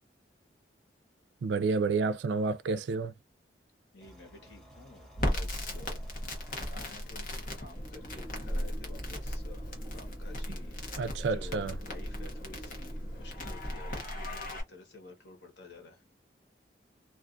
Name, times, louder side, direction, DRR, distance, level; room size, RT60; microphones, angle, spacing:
voice 1, 1.4-3.1 11.0-11.8, right 4 dB, 80° right, 0.3 m, -30 dB
voice 2, 3.9-16.0, left 3 dB, 85° left, 1.1 m, -52 dB
sound 1, 4.0-9.9, equal, 5° left, 0.8 m, -50 dB
Crackle, 5.1-14.6, left 1 dB, 50° left, 0.8 m, -37 dB
sound 2, 7.7-13.8, equal, 30° left, 1.4 m, -46 dB
2.4 x 2.3 x 2.5 m
head